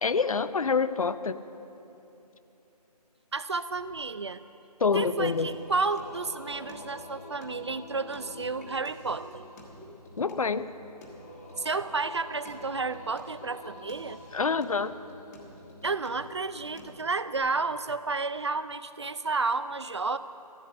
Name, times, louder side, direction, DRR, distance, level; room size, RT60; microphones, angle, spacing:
voice 1, 0.0-1.4 4.8-5.5 10.2-10.7 14.3-15.0, left 5 dB, 60° left, 14 dB, 0.6 m, -26 dB
voice 2, 3.3-4.4 4.9-9.5 9.8-9.9 11.6-14.2 15.8-20.2, right 4 dB, 45° right, 14 dB, 0.4 m, -31 dB
Singing, 5.3-16.9, left 2 dB, 25° left, 1.4 m, -47 dB
15.0 x 8.5 x 7.9 m, 2.9 s
figure-of-eight pair, 165°, 21 cm